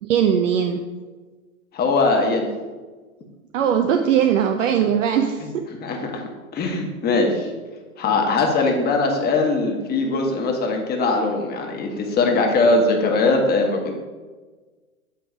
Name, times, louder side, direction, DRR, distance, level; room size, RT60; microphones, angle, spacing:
voice 1, 0.0-0.8 3.5-5.6, right 8 dB, 65° right, 5 dB, 0.7 m, -20 dB
voice 2, 1.7-2.5 5.8-6.2 6.5-7.5 8.0-13.9, left 3 dB, 20° left, 2 dB, 1.3 m, -21 dB
8.3 x 3.8 x 4.8 m, 1.3 s
hypercardioid pair, 115°, 42 cm